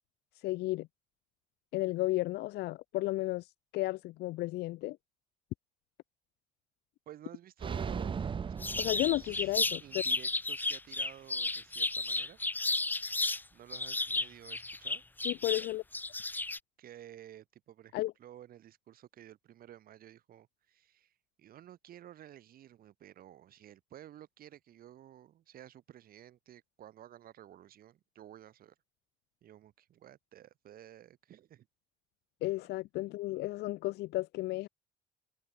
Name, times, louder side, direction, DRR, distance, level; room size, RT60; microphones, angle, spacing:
voice 1, 0.3-0.9 1.7-5.0 8.8-10.0 15.2-15.8 17.9-18.1 32.4-34.7, left 18 dB, 75° left, 0.6 m, -33 dB
voice 2, 7.1-12.4 13.5-15.0 16.8-21.1 21.4-28.7 29.4-31.7, right 11 dB, 60° right, 2.9 m, -53 dB
sound 1, 7.6-9.8, right 6 dB, 30° right, 0.9 m, -38 dB
sound 2, 8.6-13.4 13.7-16.6, left 2 dB, 10° left, 0.7 m, -33 dB
cardioid pair, 110°, 17 cm